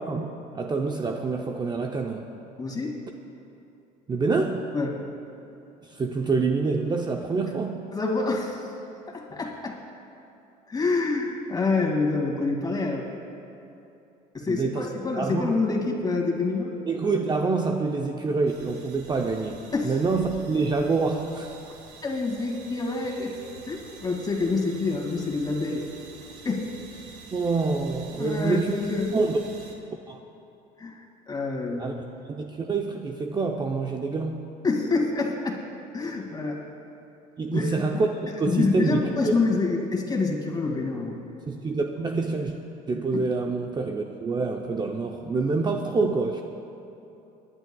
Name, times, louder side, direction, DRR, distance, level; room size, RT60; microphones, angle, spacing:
voice 1, 0.0-2.4 4.1-4.7 5.8-7.9 14.5-14.9 15.2-15.5 16.9-21.5 27.3-28.7 29.1-29.4 30.1-30.2 31.8-34.5 37.4-39.3 41.5-42.6 42.9-46.4, right 4 dB, 25° right, 3 dB, 0.6 m, -26 dB
voice 2, 2.6-3.0 4.7-5.0 7.9-8.7 9.1-9.8 10.7-13.1 14.3-16.7 19.7-20.0 22.0-23.4 23.7-25.9 26.4-26.7 28.2-29.1 30.8-31.9 34.6-35.6 35.9-36.6 37.5-41.2 43.1-43.3, left 3 dB, 25° left, 0 dB, 2.2 m, -27 dB
sound 1, 18.5-29.7, right 4 dB, 80° right, 1.5 m, -47 dB
24.5 x 11.0 x 2.3 m, 2.8 s
cardioid pair, 105°, 18 cm